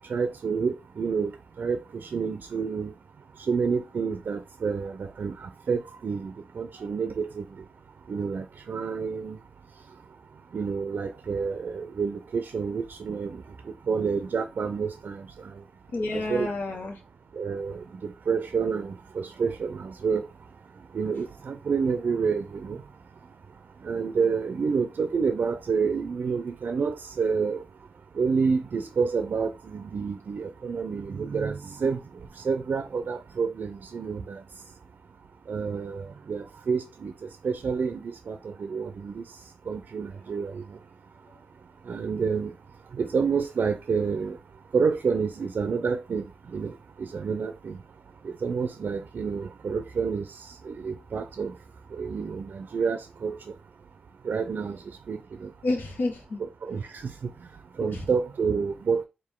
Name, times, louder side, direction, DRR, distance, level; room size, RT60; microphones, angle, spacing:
voice 1, 0.1-1.3 1.6-2.9 3.5-7.4 8.1-9.4 10.5-13.4 13.9-15.3 16.1-16.5 17.4-20.3 20.9-22.8 23.8-27.6 28.2-32.0 32.4-34.4 35.5-37.1 37.4-39.2 39.7-40.6 41.9-42.5 42.9-44.4 44.7-46.2 46.5-46.7 47.0-47.8 48.2-50.3 50.6-51.5 52.0-53.4 54.2-54.8 55.1-55.5 56.4-57.0 57.8-59.0, right 5 dB, 65° right, 0.4 m, -28 dB
voice 2, 15.9-17.0 55.6-56.4 57.8-58.0, left 2 dB, 75° left, 1.3 m, -30 dB
4.5 x 2.6 x 3.6 m
cardioid pair, 60°, 3 cm